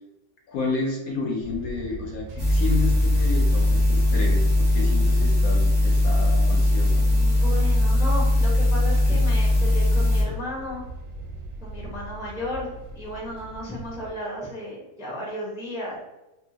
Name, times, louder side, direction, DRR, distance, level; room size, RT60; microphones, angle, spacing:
voice 1, 0.5-7.0, left 3 dB, 70° left, 0 dB, 0.9 m, -31 dB
sound 1, 1.4-14.1, right 3 dB, 70° right, 0.9 m, -40 dB
sound 2, 2.4-10.2, left 1 dB, 25° right, 1.1 m, -20 dB
voice 2, 6.9-10.8 11.6-12.7 12.9-16.0, left 1 dB, 5° right, -5 dB, 0.5 m, -34 dB
2.7 x 2.7 x 2.7 m, 1.0 s
omnidirectional pair, 1.8 m